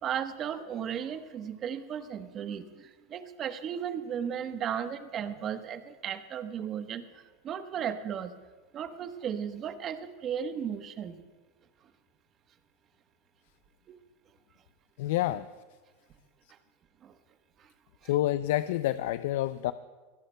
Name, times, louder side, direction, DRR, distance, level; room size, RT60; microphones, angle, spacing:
voice 1, 0.0-7.0 7.4-8.3 8.7-11.2 13.9-14.0 17.0-17.1, right 8 dB, 40° right, 9 dB, 1.1 m, -35 dB
voice 2, 15.0-15.5 18.1-19.7, left 14 dB, 70° left, 14 dB, 0.4 m, -28 dB
24.0 x 17.0 x 2.3 m, 1.4 s
hypercardioid pair, 95°, 0 cm